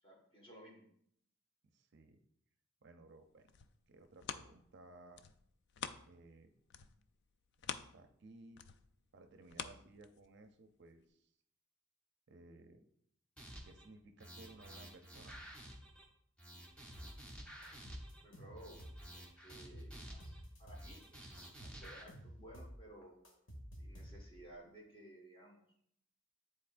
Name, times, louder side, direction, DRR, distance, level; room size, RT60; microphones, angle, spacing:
voice 1, 0.0-0.9 18.2-18.8 19.1-23.2 23.7-25.6, right 1 dB, 25° left, -1 dB, 1.5 m, -57 dB
voice 2, 1.7-2.2 2.8-3.5 3.9-5.2 6.1-6.5 7.6-8.6 9.1-11.3 12.3-12.8 13.6-15.3, right 2 dB, 55° right, 6 dB, 0.5 m, -59 dB
sound 1, 3.2-6.4 6.7-10.5 11.0-11.1, left 7 dB, 55° left, 0.3 m, -48 dB
sound 2, 13.4-13.9 14.2-16.1 16.4-18.2 18.6-20.4 20.7-22.0, right 1 dB, 5° left, 0.9 m, -52 dB
sound 3, 16.9-17.3 17.6-19.2 19.5-21.1 21.4-24.5, equal, 75° left, 1.5 m, -52 dB
9.6 x 4.1 x 2.5 m, 0.68 s
head